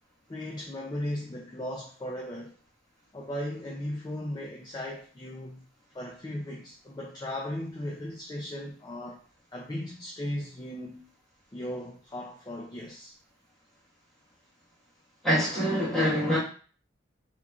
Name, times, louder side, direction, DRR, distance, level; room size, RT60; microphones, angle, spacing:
voice 1, 0.3-2.5 3.1-5.6 5.9-9.2 9.5-11.0 11.5-13.1, left 1 dB, 20° left, 0.3 m, -37 dB
voice 2, 15.2-16.4, equal, ahead, 1.3 m, -25 dB
3.5 x 3.0 x 2.3 m
head